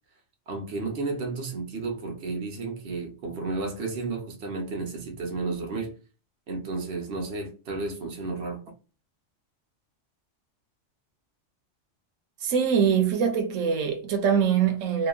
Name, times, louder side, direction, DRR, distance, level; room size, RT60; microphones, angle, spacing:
voice 1, 0.5-5.9 6.5-8.6, right 3 dB, 60° right, 1.0 m, -32 dB
voice 2, 12.4-15.1, right 7 dB, 90° right, 1.0 m, -23 dB
2.9 x 2.2 x 2.3 m
omnidirectional pair, 1.3 m